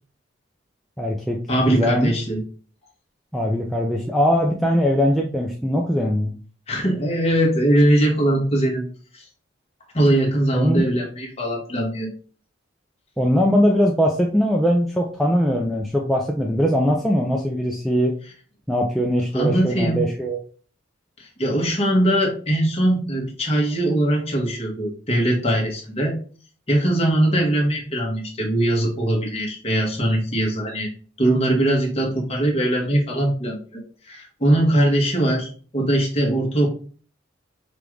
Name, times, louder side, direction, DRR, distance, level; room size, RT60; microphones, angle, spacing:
voice 1, 1.0-1.4 1.7-2.1 3.3-6.3 10.5-10.8 13.2-18.1 18.7-20.4, equal, ahead, -2 dB, 0.4 m, -21 dB
voice 2, 1.5-2.4 6.7-8.9 9.1-9.2 9.9-12.1 19.3-20.0 21.2-26.2 26.7-30.9 31.2-33.8 34.1-36.7, right 1 dB, 30° left, -1 dB, 1.2 m, -21 dB
5.0 x 2.4 x 3.1 m, 0.41 s
head